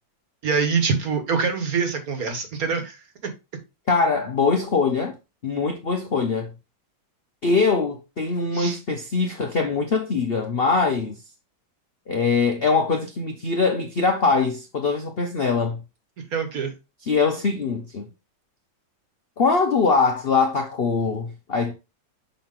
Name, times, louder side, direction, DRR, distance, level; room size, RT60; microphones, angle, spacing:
voice 1, 0.4-3.0 3.2-3.3 8.5-8.8 16.3-16.7, right 5 dB, 50° right, 1.6 m, -24 dB
voice 2, 3.9-5.1 5.4-6.5 7.4-11.2 12.1-15.8 17.0-18.1 19.4-21.7, left 4 dB, 50° left, 0.7 m, -22 dB
6.5 x 4.6 x 3.7 m
omnidirectional pair, 2.1 m